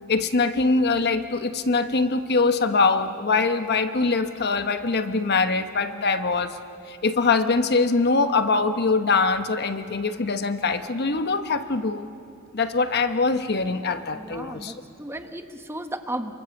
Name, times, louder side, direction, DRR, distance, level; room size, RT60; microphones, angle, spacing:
voice 1, 0.1-6.6 6.9-12.1 12.5-14.7, left 4 dB, 50° left, 9 dB, 1.1 m, -23 dB
voice 2, 14.1-16.3, right 1 dB, 10° right, 6 dB, 1.2 m, -34 dB
29.0 x 24.5 x 7.2 m, 2.8 s
head